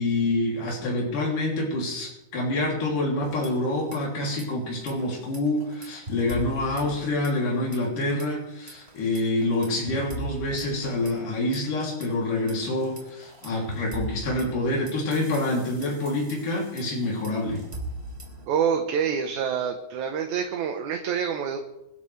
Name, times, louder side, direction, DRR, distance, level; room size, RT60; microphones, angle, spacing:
voice 1, 0.0-17.6, left 2 dB, 85° left, -2 dB, 4.5 m, -27 dB
sound 1, 3.2-4.0 4.2-4.4 4.8-7.5 7.7-8.2 8.7-12.1 12.5-18.4, equal, 20° right, 3.4 m, -39 dB
voice 2, 18.5-21.6, right 7 dB, 75° right, 4 dB, 2.4 m, -26 dB
26.0 x 12.0 x 3.3 m, 0.91 s
omnidirectional pair, 3.6 m